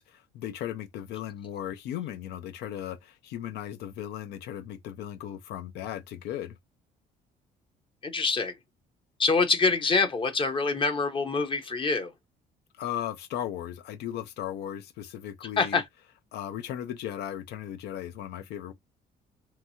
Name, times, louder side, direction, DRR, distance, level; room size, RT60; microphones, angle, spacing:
voice 1, 0.0-6.5 12.8-15.8 16.3-18.7, left 11 dB, 75° left, 0.5 m, -36 dB
voice 2, 8.0-8.5 9.2-12.1 15.6-15.8, left 4 dB, 30° left, 0.7 m, -25 dB
2.9 x 2.3 x 2.7 m
cardioid pair, 110°, 17 cm